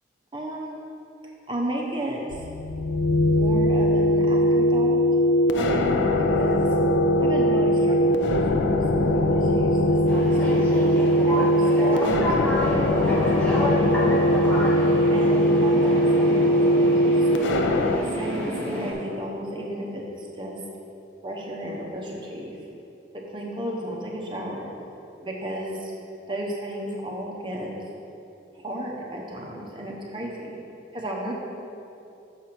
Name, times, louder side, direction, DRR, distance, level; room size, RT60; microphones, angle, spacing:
voice 1, 0.3-0.8 1.2-2.5 3.3-5.0 5.5-6.7 7.2-8.4 8.7-10.8 11.3-14.4 15.1-17.2 18.1-20.6 21.2-22.6 23.3-24.7 25.2-25.9 26.3-27.7 28.5-30.6 30.9-31.3, right 1 dB, 25° right, -2 dB, 0.7 m, -33 dB
sound 1, 2.3-18.0, equal, 80° left, 0.4 m, -20 dB
sound 2, 10.1-18.9, equal, 5° left, 0.9 m, -29 dB
6.5 x 4.5 x 5.9 m, 2.7 s
head